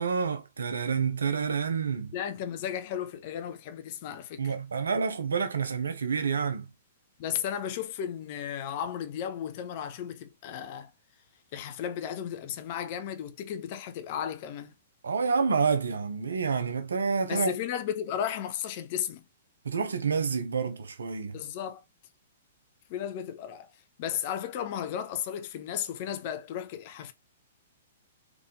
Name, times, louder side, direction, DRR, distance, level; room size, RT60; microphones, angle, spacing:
voice 1, 0.0-2.1 4.4-6.7 15.0-17.5 19.6-21.4, right 5 dB, 70° right, 0.9 m, -28 dB
voice 2, 2.1-4.5 7.2-10.9 11.5-14.7 17.3-19.2 21.3-21.8 22.9-23.7 24.0-27.1, left 9 dB, 45° left, 0.8 m, -34 dB
3.7 x 3.4 x 3.7 m
figure-of-eight pair, 110°, 0 cm